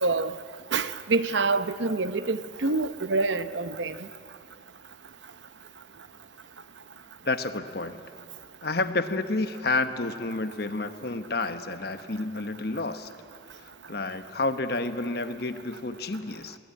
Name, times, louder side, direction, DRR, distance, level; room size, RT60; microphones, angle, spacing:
voice 1, 0.0-0.3 0.7-4.0, right 3 dB, 70° right, 12 dB, 0.8 m, -26 dB
voice 2, 7.2-8.0 8.6-13.1 13.9-16.6, left 3 dB, 55° left, 9 dB, 1.1 m, -30 dB
21.5 x 18.0 x 9.7 m, 2.3 s
head